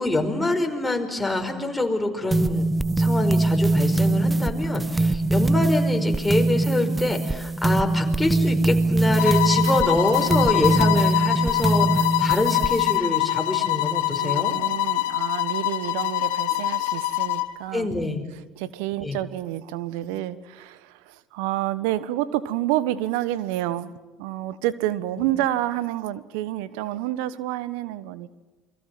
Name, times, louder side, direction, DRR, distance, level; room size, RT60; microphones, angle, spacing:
voice 1, 0.0-2.6 3.0-14.6 17.7-18.2 19.0-19.2 25.2-25.3, left 2 dB, 10° left, 3 dB, 5.1 m, -26 dB
sound 1, 2.3-13.0, right 2 dB, 15° right, 1.1 m, -22 dB
sound 2, 9.2-17.6, left 16 dB, 75° left, 1.3 m, -24 dB
voice 2, 14.2-17.9 18.6-28.3, right 14 dB, 70° right, 17 dB, 1.2 m, -29 dB
28.5 x 22.5 x 7.7 m, 1.2 s
hypercardioid pair, 65°, 0 cm